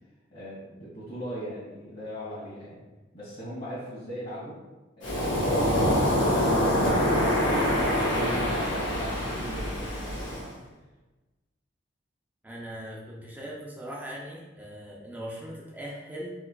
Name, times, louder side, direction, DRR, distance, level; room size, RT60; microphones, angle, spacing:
voice 1, 0.3-2.8 3.1-4.6 5.0-10.7, equal, 50° left, -9 dB, 1.4 m, -39 dB
Waves surf, 5.0-10.5, equal, 75° left, 0.9 m, -25 dB
voice 2, 12.4-16.3, equal, 10° right, -4 dB, 0.4 m, -40 dB
4.5 x 2.2 x 2.2 m, 1.2 s
head